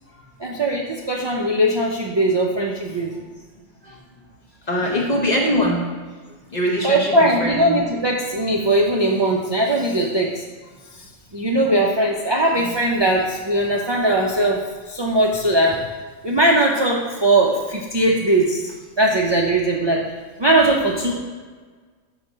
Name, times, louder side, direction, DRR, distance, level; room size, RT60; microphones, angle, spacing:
voice 1, 0.4-3.2 4.8-4.9 6.8-10.4 11.3-15.8 16.2-20.0 20.4-21.2, right 1 dB, 35° right, -1 dB, 0.4 m, -20 dB
voice 2, 4.7-5.8 6.5-7.8 12.6-12.7, equal, 35° left, -1 dB, 1.1 m, -22 dB
7.9 x 2.9 x 6.1 m, 1.5 s
omnidirectional pair, 1.3 m